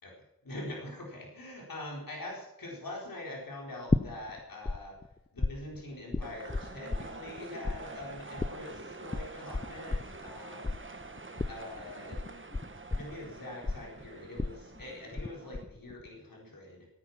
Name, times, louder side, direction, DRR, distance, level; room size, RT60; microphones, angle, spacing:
voice 1, 0.0-5.0 5.3-10.8 11.5-12.2 12.9-16.9, left 1 dB, 70° left, -2 dB, 4.4 m, -44 dB
sound 1, 3.9-4.8 5.0-7.4 7.6-15.3 15.5-16.1, left 3 dB, 15° left, 0.5 m, -33 dB
sound 2, 6.2-15.6, right 3 dB, 35° right, 1.6 m, -47 dB
17.0 x 9.8 x 6.0 m, 0.92 s
wide cardioid pair, 65°, 36 cm